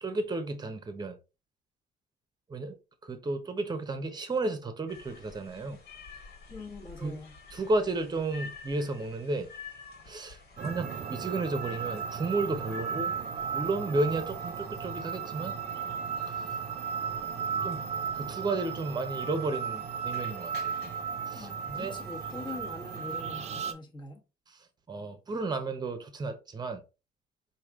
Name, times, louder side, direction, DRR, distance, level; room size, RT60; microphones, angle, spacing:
voice 1, 0.0-1.2 2.5-2.7 3.0-5.8 7.0-7.2 7.5-9.5 10.1-13.1 13.5-15.6 16.3-16.5 17.6-17.8 18.1-20.9 21.3-22.0 24.5-26.8, right 2 dB, 25° right, 0.9 m, -33 dB
sound 1, 4.9-23.5, left 5 dB, 70° left, 1.8 m, -50 dB
voice 2, 6.5-7.4 21.3-24.2, left 3 dB, 25° left, 1.4 m, -43 dB
sound 2, 10.6-23.7, right 7 dB, 40° right, 0.7 m, -35 dB
4.8 x 2.8 x 3.6 m
cardioid pair, 110°, 17 cm